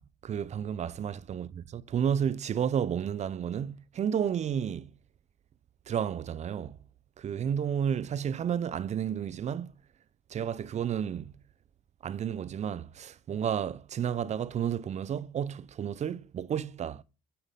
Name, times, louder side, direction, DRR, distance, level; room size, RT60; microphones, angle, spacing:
voice 1, 0.2-4.9 5.9-6.8 7.2-9.7 10.3-11.3 12.0-17.0, right 8 dB, 40° right, 0.7 m, -31 dB
9.1 x 5.8 x 8.3 m
cardioid pair, 110°, 17 cm